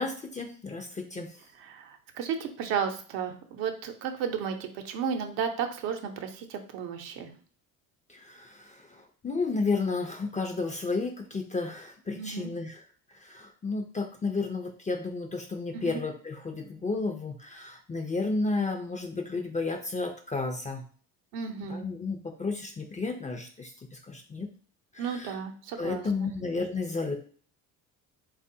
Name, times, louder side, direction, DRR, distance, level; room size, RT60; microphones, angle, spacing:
voice 1, 0.0-1.4 8.1-12.8 13.1-20.8 21.7-24.5 24.9-25.4 25.8-27.2, left 3 dB, 15° left, 5 dB, 0.4 m, -32 dB
voice 2, 1.6-7.3 12.1-12.5 15.7-16.0 21.3-21.8 25.0-26.3, right 7 dB, 70° right, 5 dB, 0.8 m, -33 dB
3.5 x 2.3 x 2.7 m, 0.44 s
hypercardioid pair, 65°, 46 cm